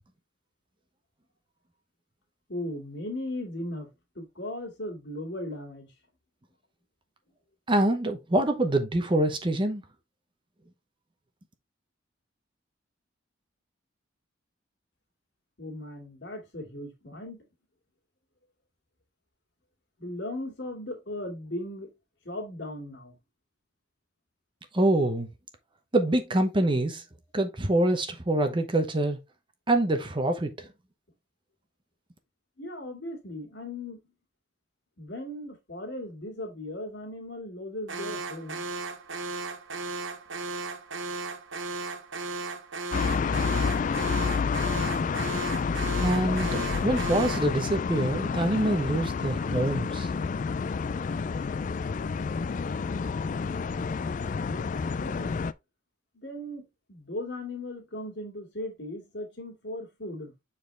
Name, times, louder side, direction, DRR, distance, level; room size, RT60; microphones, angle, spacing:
voice 1, 2.5-3.9 4.2-5.9 15.6-17.4 20.0-21.9 22.2-23.2 32.6-34.0 35.0-38.6 54.5-55.3 56.1-60.3, left 1 dB, 60° left, 2.4 m, -37 dB
voice 2, 7.7-9.8 24.7-25.3 25.9-27.0 27.3-29.2 29.7-30.7 46.0-50.1, right 1 dB, 25° right, 0.8 m, -25 dB
Alarm, 37.9-47.6, right 3 dB, 75° right, 1.0 m, -36 dB
sound 1, 42.9-55.5, left 5 dB, 40° left, 0.3 m, -29 dB
7.4 x 4.2 x 3.3 m
head